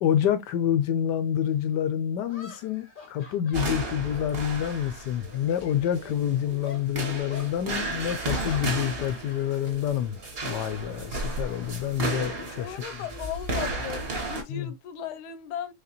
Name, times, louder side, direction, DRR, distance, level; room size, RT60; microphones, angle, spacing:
voice 1, 0.0-12.8 14.5-14.7, left 10 dB, 75° left, 1.0 m, -27 dB
sound 1, 1.4-1.5 2.3-4.9 5.2-6.2 6.6-6.9 7.3-7.5 8.1-9.8 10.1-10.3 11.5-13.0, left 4 dB, 45° left, 0.6 m, -47 dB
sound 2, 3.5-14.4, right 2 dB, 40° right, 0.9 m, -34 dB
voice 2, 12.6-15.7, left 9 dB, 90° left, 1.5 m, -37 dB
4.1 x 3.2 x 2.8 m
omnidirectional pair, 2.2 m